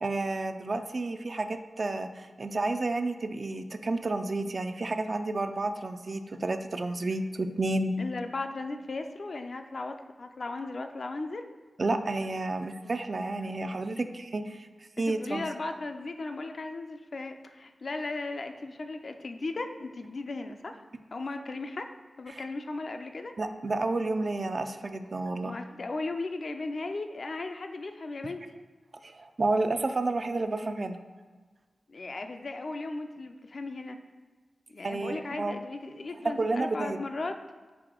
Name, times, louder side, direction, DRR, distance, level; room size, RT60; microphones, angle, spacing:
voice 1, 0.0-7.9 11.8-14.7 15.0-15.5 22.3-22.4 23.4-25.6 29.0-31.0 34.8-35.6 36.4-37.0, right 2 dB, 55° right, 8 dB, 0.3 m, -31 dB
voice 2, 8.0-11.5 15.0-20.8 21.1-21.9 22.2-23.4 25.4-28.4 31.9-34.0 34.7-37.4, left 3 dB, 60° left, 6 dB, 0.3 m, -36 dB
4.8 x 2.5 x 3.7 m, 1.4 s
cardioid pair, 40°, 0 cm